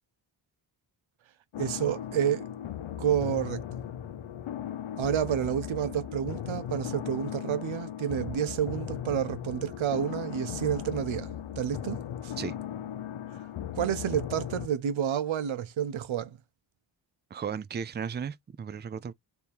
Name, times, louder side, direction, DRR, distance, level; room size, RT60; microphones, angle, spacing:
sound 1, 1.5-14.7, left 10 dB, 80° left, 0.7 m, -37 dB
voice 1, 1.6-2.4 3.0-3.6 5.0-12.0 12.2-12.3 13.7-16.4, right 9 dB, 90° right, 0.8 m, -29 dB
voice 2, 17.3-19.1, right 7 dB, 25° right, 0.4 m, -35 dB
3.5 x 2.8 x 4.6 m
wide cardioid pair, 90°, 46 cm